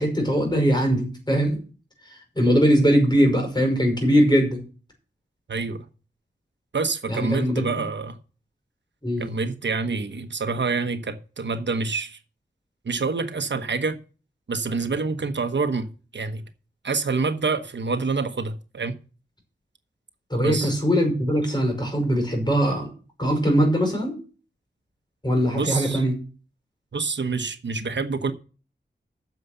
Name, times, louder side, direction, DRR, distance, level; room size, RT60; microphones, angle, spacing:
voice 1, 0.0-1.6 2.4-4.6 7.1-7.6 9.0-9.3 20.3-22.9 23.2-24.2 25.2-26.1, equal, 20° left, 5.5 m, -21 dB
voice 2, 5.5-5.8 6.7-8.2 9.2-12.2 12.8-14.0 14.5-15.9 16.1-16.4 16.8-19.0 20.4-20.7 25.5-26.0 26.9-28.3, right 4 dB, 70° right, 1.1 m, -27 dB
9.4 x 6.9 x 8.1 m
wide cardioid pair, 90°, 19 cm